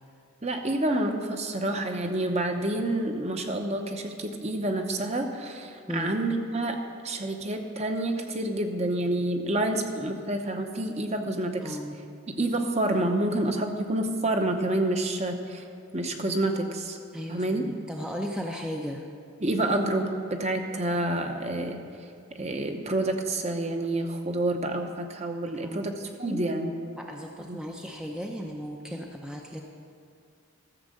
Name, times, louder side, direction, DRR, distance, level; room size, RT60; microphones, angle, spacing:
voice 1, 0.4-11.8 12.4-15.6 15.9-17.0 17.3-17.6 19.4-25.9 26.2-26.7 27.4-27.6, right 1 dB, 30° right, 5 dB, 0.8 m, -28 dB
voice 2, 11.6-12.0 17.1-19.1 25.7-25.9 26.2-26.4 27.0-29.6, equal, 5° right, 0 dB, 0.6 m, -36 dB
14.0 x 7.3 x 6.6 m, 2.4 s
head